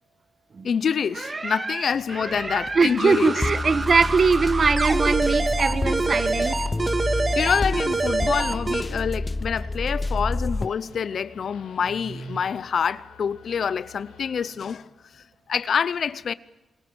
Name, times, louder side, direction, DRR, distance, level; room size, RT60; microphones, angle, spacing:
voice 1, 0.6-3.3 7.3-16.3, left 7 dB, 65° left, 0.7 m, -26 dB
sound 1, 1.1-8.8, right 3 dB, 35° right, 2.0 m, -27 dB
sound 2, 1.9-14.5, left 6 dB, 90° left, 4.0 m, -49 dB
sound 3, 2.4-10.7, left 2 dB, 25° left, 0.8 m, -29 dB
voice 2, 2.7-6.6, right 4 dB, 50° right, 1.5 m, -21 dB
27.5 x 20.5 x 6.3 m
supercardioid pair, 50°, 0 cm